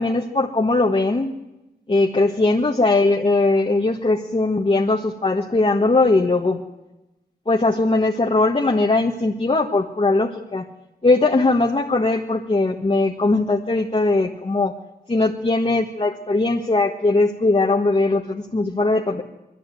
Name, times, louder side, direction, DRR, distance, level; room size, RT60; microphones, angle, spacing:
voice 1, 0.0-1.3 1.9-6.6 7.5-10.7 11.0-14.8 15.1-19.2, left 2 dB, 35° left, 1 dB, 1.6 m, -20 dB
22.5 x 15.0 x 9.3 m, 0.97 s
wide cardioid pair, 95°, 17 cm